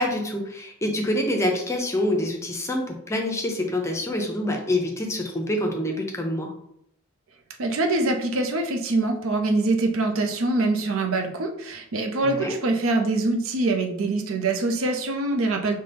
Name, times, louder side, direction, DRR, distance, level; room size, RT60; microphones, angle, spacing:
voice 1, 0.0-6.5 12.2-12.6, left 1 dB, 15° left, 2 dB, 0.6 m, -26 dB
voice 2, 7.6-15.8, right 2 dB, 90° right, 3 dB, 0.6 m, -24 dB
5.4 x 2.2 x 3.3 m, 0.74 s
head